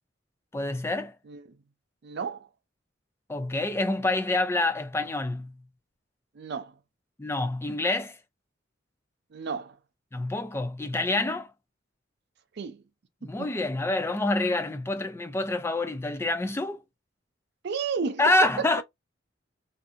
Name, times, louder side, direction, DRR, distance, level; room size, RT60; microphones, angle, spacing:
voice 1, 0.5-1.2 3.3-5.5 7.2-8.2 10.1-11.5 13.2-16.8 18.2-18.8, left 2 dB, 15° left, 0.3 m, -27 dB
voice 2, 2.0-2.5 6.3-6.7 9.3-9.8 12.6-12.8 13.4-13.5 17.6-18.2 18.6-18.7, right 5 dB, 60° right, 0.5 m, -32 dB
2.6 x 2.6 x 2.5 m
head